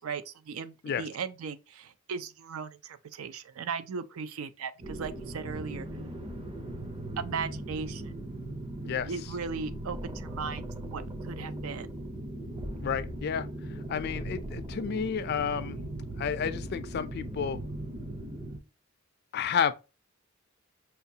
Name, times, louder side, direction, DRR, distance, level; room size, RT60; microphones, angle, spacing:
voice 1, 0.0-5.9 7.2-8.1 8.8-11.0 11.3-11.9, right 5 dB, 85° right, 0.4 m, -37 dB
sound 1, 4.8-18.6, right 1 dB, 25° right, 0.6 m, -39 dB
voice 2, 12.8-13.5 13.9-15.8 16.2-17.6 19.3-19.7, left 7 dB, 50° left, 0.3 m, -31 dB
5.5 x 2.3 x 2.7 m
head